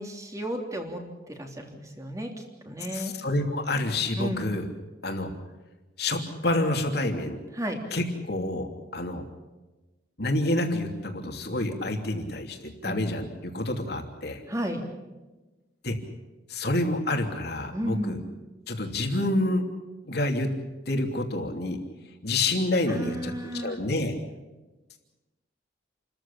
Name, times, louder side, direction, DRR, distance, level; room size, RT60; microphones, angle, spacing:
voice 1, 0.0-3.1 4.2-4.5 7.5-7.8 12.9-13.0 14.5-14.9 17.7-18.2 22.9-23.8, equal, 20° right, 3 dB, 3.3 m, -33 dB
voice 2, 2.9-4.7 5.0-5.3 6.0-7.4 7.9-9.2 10.2-14.4 15.8-16.0 16.5-18.2 18.7-19.6 20.1-20.5 20.9-21.8 22.2-24.2, left 2 dB, 60° left, 4 dB, 3.0 m, -28 dB
28.5 x 14.5 x 8.8 m, 1.1 s
head